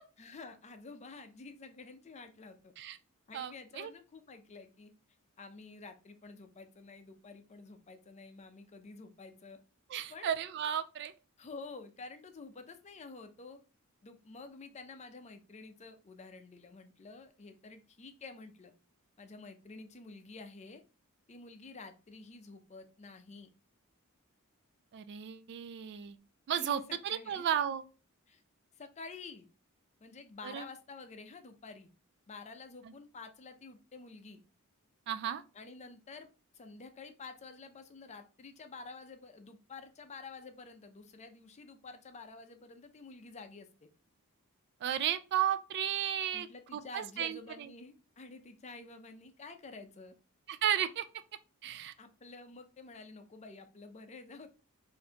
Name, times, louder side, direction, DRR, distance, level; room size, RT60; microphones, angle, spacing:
voice 1, 0.2-2.7 3.3-4.9 5.4-9.6 10.1-10.3 11.4-13.6 14.0-18.7 19.2-20.8 21.3-23.5 26.6-27.4 28.3-28.4 28.8-29.5 30.0-31.9 32.3-34.4 35.5-36.3 36.5-43.9 46.3-50.1 52.0-54.5, left 3 dB, 30° left, 0.5 m, -50 dB
voice 2, 3.3-3.9 9.9-11.1 24.9-26.2 26.5-27.8 30.4-30.6 32.9-33.0 35.1-35.4 44.8-46.5 46.7-47.4 50.5-51.0 51.6-51.9, right 9 dB, 50° right, 0.3 m, -34 dB
4.0 x 2.6 x 2.8 m
head